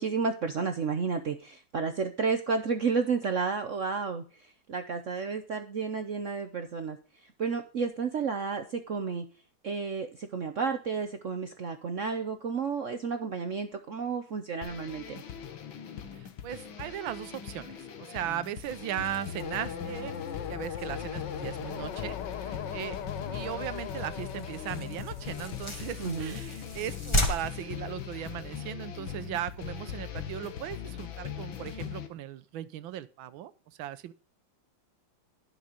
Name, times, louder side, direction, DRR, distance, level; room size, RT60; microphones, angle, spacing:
voice 1, 0.0-4.2 4.7-7.0 7.2-9.3 9.6-15.2 26.0-26.4, right 5 dB, 55° right, 7 dB, 0.9 m, -31 dB
sound 1, 14.6-32.1, left 9 dB, 85° left, 2.0 m, -40 dB
voice 2, 16.1-20.1 20.5-23.0 23.3-33.5 33.8-34.1, right 11 dB, 85° right, 14 dB, 1.6 m, -38 dB
sound 2, 18.6-28.7, equal, 15° left, 1.8 m, -38 dB
sound 3, 19.4-26.3, left 8 dB, 65° left, 1.6 m, -40 dB
11.5 x 6.7 x 5.1 m, 0.36 s
omnidirectional pair, 2.1 m